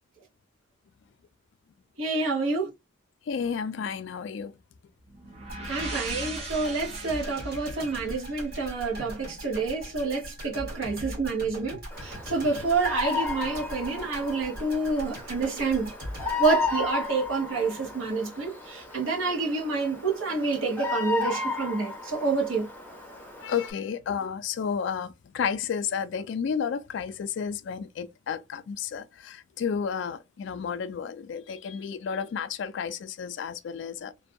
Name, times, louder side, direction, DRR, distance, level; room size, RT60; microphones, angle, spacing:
voice 1, 2.0-2.7 5.7-15.9 16.4-22.7, right 4 dB, 85° right, 1.0 m, -28 dB
voice 2, 3.3-4.5 23.4-34.1, left 6 dB, 60° left, 0.3 m, -32 dB
sound 1, 5.1-8.9, right 3 dB, 35° right, 0.7 m, -39 dB
sound 2, 5.5-17.5 17.8-18.0, equal, 50° right, 1.4 m, -41 dB
Bird vocalization bird call bird song, 11.9-23.7, left 4 dB, 10° left, 0.5 m, -34 dB
2.5 x 2.2 x 2.5 m
head